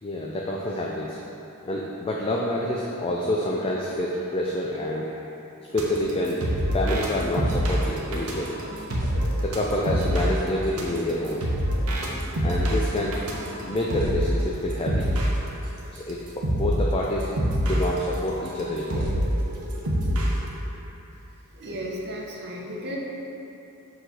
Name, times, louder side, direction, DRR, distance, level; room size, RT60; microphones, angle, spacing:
voice 1, 0.0-1.2 1.7-5.1 5.7-6.4 6.7-8.6 9.4-11.4 12.4-13.2 13.6-15.1 15.5-15.6 15.9-17.3 17.6-19.2 21.0-21.1 21.7-21.8, left 1 dB, 25° left, -3 dB, 0.4 m, -27 dB
sound 1, 5.8-15.4 16.0-16.1 16.4-16.8 17.2-20.4, equal, 75° right, 0.9 m, -26 dB
voice 2, 21.6-23.0, equal, 50° right, -2 dB, 0.9 m, -34 dB
6.2 x 4.9 x 3.9 m, 3.0 s
head